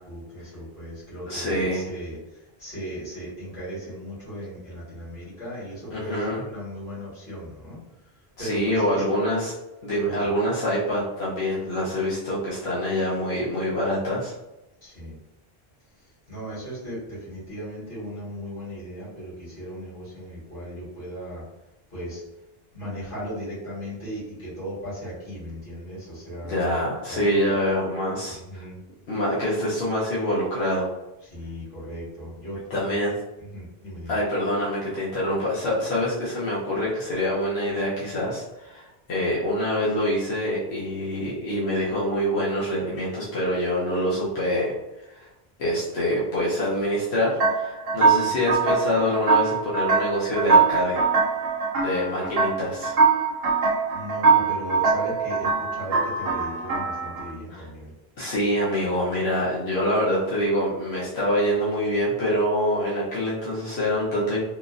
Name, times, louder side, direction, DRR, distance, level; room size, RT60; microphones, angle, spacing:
voice 1, 0.0-7.8 8.4-9.0 10.0-10.3 14.8-15.2 16.0-21.4 21.9-22.2 22.7-26.8 27.1-27.6 28.3-28.8 31.2-34.2 53.9-57.9, equal, 55° left, -10 dB, 1.9 m, -37 dB
voice 2, 1.3-1.9 5.9-6.4 8.4-9.5 9.8-14.3 26.4-28.6 29.1-30.9 32.7-33.1 34.1-44.7 45.1-45.3 45.6-51.0 51.8-52.9 57.5-57.7 58.2-64.4, equal, 90° left, -8 dB, 1.1 m, -25 dB
sound 1, 47.4-57.3, right 4 dB, 75° right, 0.8 m, -22 dB
3.7 x 2.4 x 2.5 m, 0.95 s
omnidirectional pair, 1.0 m